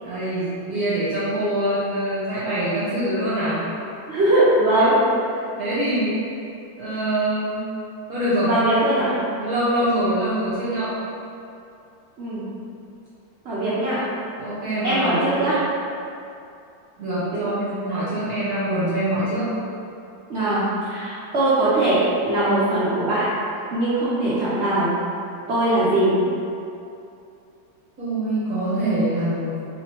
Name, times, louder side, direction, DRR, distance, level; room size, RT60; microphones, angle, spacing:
voice 1, 0.0-3.7 4.8-4.9 5.3-6.2 6.8-7.6 8.1-8.5 9.4-11.0 14.4-15.1 15.4-15.5 17.0-19.5 28.0-29.6, right 1 dB, 60° right, -10 dB, 1.2 m, -24 dB
voice 2, 4.1-5.0 8.4-9.1 12.2-12.4 13.4-14.0 14.8-15.6 17.3-17.5 17.9-18.0 20.3-23.2 23.7-24.9 25.5-26.1, right 1 dB, 85° right, -10 dB, 0.6 m, -20 dB
3.8 x 2.9 x 2.9 m, 2.6 s
omnidirectional pair, 2.1 m